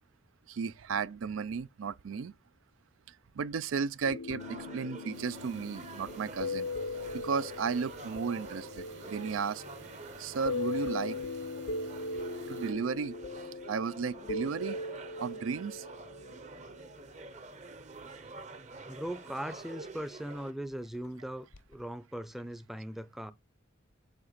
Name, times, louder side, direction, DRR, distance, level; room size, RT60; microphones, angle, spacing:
voice 1, 0.5-2.3 3.4-6.7 7.1-9.6 10.2-11.2 12.5-13.2 13.7-14.8 15.2-15.8, right 5 dB, 90° right, 0.4 m, -34 dB
sound 1, 4.0-17.2 21.5-21.7, left 3 dB, 80° left, 0.8 m, -40 dB
sound 2, 4.4-20.5, right 3 dB, 35° right, 0.7 m, -48 dB
sound 3, 5.1-12.7, right 3 dB, 65° right, 2.0 m, -53 dB
voice 2, 18.9-23.3, right 1 dB, ahead, 0.5 m, -39 dB
8.1 x 2.9 x 5.6 m
head